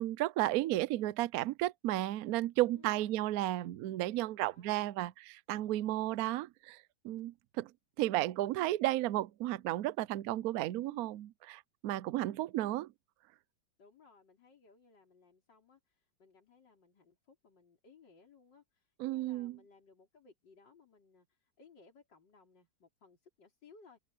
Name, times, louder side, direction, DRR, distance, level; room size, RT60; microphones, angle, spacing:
voice 1, 0.0-7.7 8.0-12.9 19.0-19.6, right 15 dB, 70° right, 0.9 m, -33 dB
voice 2, 2.7-3.3 4.5-4.9 10.7-11.0 13.8-24.0, left 5 dB, 75° left, 4.2 m, -62 dB
open air
omnidirectional pair, 1.9 m